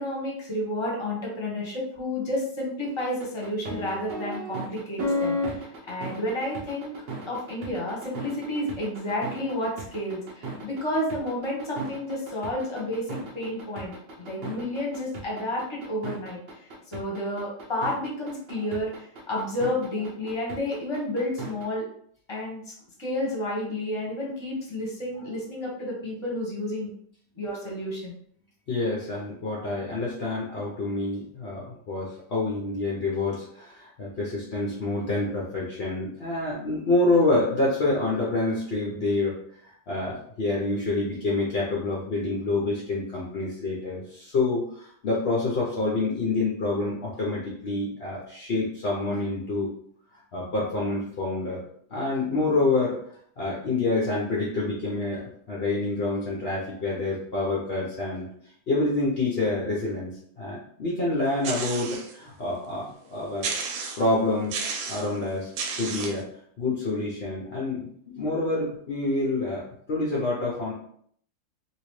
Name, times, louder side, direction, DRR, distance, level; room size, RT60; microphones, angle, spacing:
voice 1, 0.0-6.9 7.3-16.4 16.9-21.9 22.3-22.7 23.0-26.9 27.3-28.1, left 1 dB, 20° left, -4 dB, 0.8 m, -31 dB
sound 1, 3.0-21.6, equal, 70° right, 0.5 m, -34 dB
voice 2, 28.7-39.3 39.6-49.7 50.3-51.6 51.9-53.0 53.4-55.2 55.5-58.3 58.7-60.1 60.4-63.6 64.0-65.5 65.8-66.3 66.6-67.9 68.2-70.7, left 2 dB, 65° left, -5 dB, 0.6 m, -27 dB
sound 2, 61.4-62.1 62.6-62.7 63.4-64.1 64.5-65.1 65.6-66.2, right 5 dB, 90° right, 1.4 m, -32 dB
3.0 x 2.8 x 3.1 m, 0.63 s
omnidirectional pair, 2.0 m